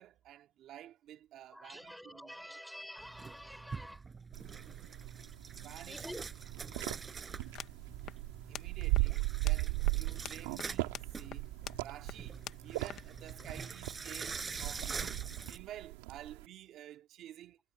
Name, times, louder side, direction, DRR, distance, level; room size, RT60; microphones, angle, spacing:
voice 1, 0.0-2.6 5.6-6.1 8.5-11.4 11.8-15.1 15.4-17.6, right 12 dB, 45° right, 2.3 m, -51 dB
voice 2, 1.5-4.0 5.9-6.3, equal, ahead, 5.3 m, -48 dB
sound 1, 3.0-15.6, right 5 dB, 20° right, 6.0 m, -45 dB
sound 2, 4.3-16.5, right 25 dB, 80° right, 1.6 m, -38 dB
sound 3, 7.4-13.7, left 11 dB, 45° left, 1.0 m, -50 dB
supercardioid pair, 120°, 0 cm